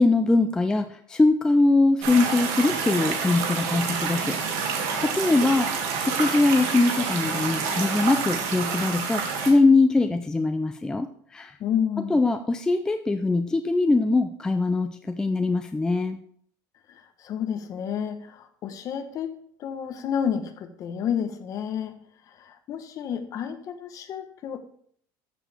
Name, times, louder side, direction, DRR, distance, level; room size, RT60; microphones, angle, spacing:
voice 1, 0.0-5.7 6.0-11.5 12.1-16.2, left 3 dB, 10° left, 7 dB, 0.4 m, -22 dB
light stream with close up bubbling, 2.0-9.5, right 5 dB, 80° right, 2.3 m, -28 dB
voice 2, 11.6-12.2 16.9-19.3 19.6-22.0 22.3-24.6, left 8 dB, 40° left, 8 dB, 1.0 m, -30 dB
13.0 x 7.2 x 3.4 m, 0.63 s
cardioid pair, 155°, 9 cm